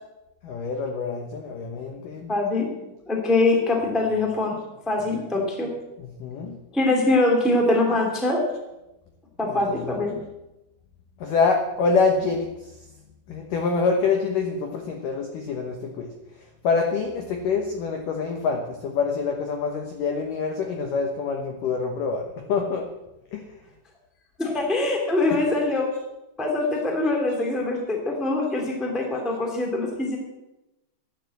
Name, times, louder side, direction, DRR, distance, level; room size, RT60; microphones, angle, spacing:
voice 1, 0.4-2.3 6.0-6.6 9.4-10.0 11.2-12.5 13.3-16.1 16.6-22.9 23.3-23.4 25.3-25.4, left 4 dB, 75° left, 3 dB, 1.9 m, -26 dB
voice 2, 2.3-4.6 4.8-5.7 6.7-8.4 9.4-10.2 24.4-25.9 26.4-30.2, left 2 dB, ahead, 1 dB, 1.1 m, -23 dB
12.5 x 9.4 x 7.8 m, 0.96 s
omnidirectional pair, 5.5 m